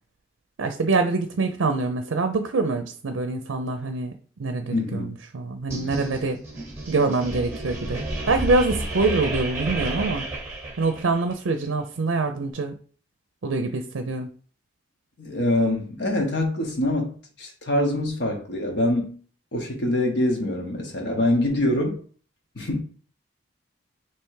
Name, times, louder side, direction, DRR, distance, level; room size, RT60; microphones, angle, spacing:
voice 1, 0.6-4.1 4.4-6.4 6.9-10.3 10.8-12.7 13.4-14.3, right 3 dB, 80° right, 0.5 m, -25 dB
voice 2, 4.7-5.2 15.2-19.2 19.5-22.0 22.6-22.8, left 1 dB, 60° left, 0.9 m, -24 dB
sound 1, 5.7-11.3, right 2 dB, 15° right, 0.9 m, -31 dB
3.4 x 3.0 x 4.6 m
head